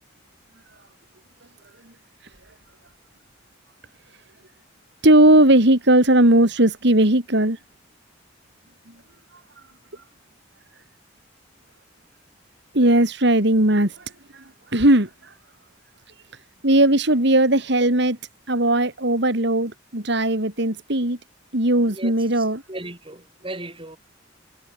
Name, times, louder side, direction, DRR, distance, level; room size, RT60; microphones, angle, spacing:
voice 1, 5.0-7.6 12.7-14.4 14.7-15.3 16.6-18.2 18.5-21.2 21.5-22.6, right 1 dB, 60° right, 3.6 m, -18 dB
voice 2, 21.9-24.0, right 1 dB, 25° right, 7.8 m, -37 dB
head